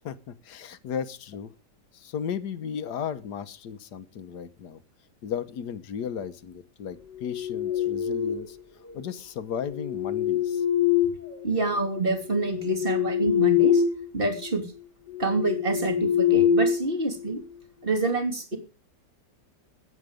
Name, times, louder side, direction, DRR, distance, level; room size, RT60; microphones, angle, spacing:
voice 1, 0.0-1.5 1.9-4.8 5.2-8.6 8.9-10.6, left 7 dB, 75° left, 12 dB, 1.6 m, -35 dB
sound 1, 7.1-8.6 9.6-11.7 12.2-14.1 14.4-14.6 15.1-17.4, left 8 dB, 10° left, 1.9 m, -25 dB
voice 2, 11.4-13.8 14.1-14.7 15.2-17.4 17.8-18.6, right 2 dB, 30° right, 4 dB, 3.3 m, -27 dB
21.0 x 8.9 x 5.1 m, 0.35 s
omnidirectional pair, 1.8 m